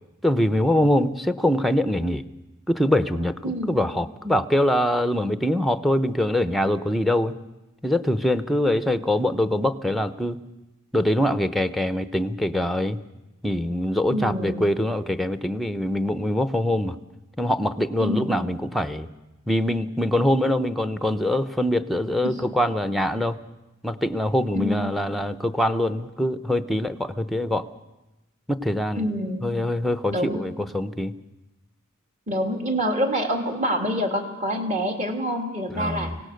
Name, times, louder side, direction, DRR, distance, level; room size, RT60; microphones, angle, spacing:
voice 1, 0.2-2.2 2.7-7.3 7.8-10.4 10.9-13.0 13.4-17.0 17.4-19.1 19.5-23.4 23.8-27.7 28.5-29.1 29.4-31.1 35.7-36.2, left 1 dB, ahead, 11 dB, 0.7 m, -23 dB
voice 2, 3.4-3.8 14.1-14.7 18.0-18.4 22.2-22.4 24.5-25.0 29.0-29.5 30.1-30.4 32.3-36.1, equal, 35° right, 3 dB, 2.6 m, -26 dB
25.0 x 17.5 x 6.5 m, 1.0 s
head